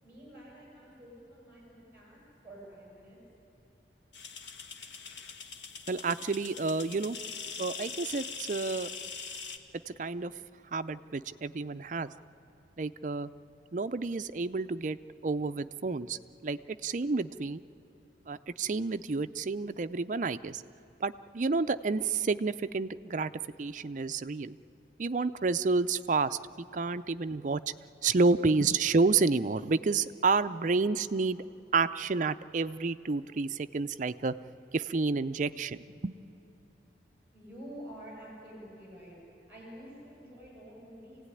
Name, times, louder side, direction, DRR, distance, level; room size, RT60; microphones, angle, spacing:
voice 1, 0.0-2.2 2.4-3.2 37.3-39.2 39.5-41.3, equal, 10° right, -5 dB, 7.0 m, -48 dB
sound 1, 4.1-9.6, left 5 dB, 85° left, 1.5 m, -42 dB
voice 2, 5.9-7.2 7.6-8.9 9.9-10.3 10.7-12.1 12.8-13.3 13.7-15.0 15.2-17.6 18.3-20.6 21.0-23.3 23.6-24.6 25.0-27.6 28.0-31.4 31.7-34.4 34.7-36.1, right 4 dB, 45° right, 12 dB, 0.5 m, -30 dB
26.0 x 16.5 x 9.8 m, 2.8 s
head